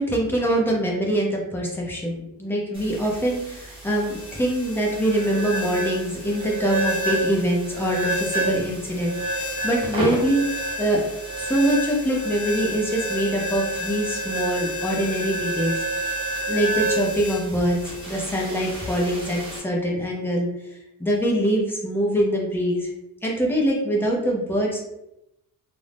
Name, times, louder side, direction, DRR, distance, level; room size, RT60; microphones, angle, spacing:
voice 1, 0.0-10.4 10.8-11.0 11.4-15.8 16.5-17.8 18.1-20.5 21.0-22.9 23.2-24.8, right 1 dB, 5° left, -2 dB, 0.4 m, -24 dB
sound 1, 2.7-19.6, right 1 dB, 15° right, 0.8 m, -29 dB
2.4 x 2.1 x 3.2 m, 0.86 s
cardioid pair, 160°, 38 cm